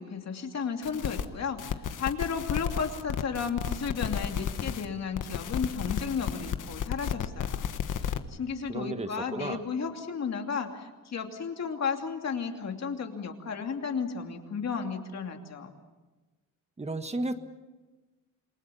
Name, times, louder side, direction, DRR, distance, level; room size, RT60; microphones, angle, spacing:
voice 1, 0.0-7.6 7.9-15.7, left 6 dB, 50° left, 4 dB, 2.8 m, -33 dB
sound 1, 0.8-1.3 1.6-4.9 5.1-8.2, left 8 dB, 65° left, 1.4 m, -33 dB
voice 2, 8.7-9.6 16.8-17.3, right 2 dB, 20° right, 8 dB, 1.5 m, -33 dB
28.0 x 22.0 x 7.1 m, 1.2 s
cardioid pair, 125°, 33 cm